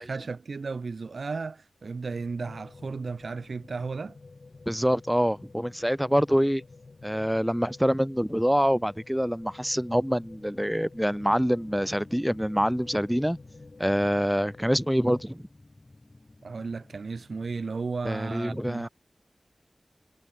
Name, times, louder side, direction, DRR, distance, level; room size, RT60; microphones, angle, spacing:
voice 1, 0.0-4.2 16.4-18.9, right 4 dB, 80° right, 2.1 m, -34 dB
sound 1, 2.1-15.3, left 3 dB, 65° left, 4.7 m, -50 dB
voice 2, 4.7-6.6 7.0-13.4 13.8-15.5 18.0-18.9, equal, 5° right, 0.7 m, -25 dB
sound 2, 11.1-17.7, left 2 dB, 40° left, 6.7 m, -52 dB
cardioid pair, 45°, 0 cm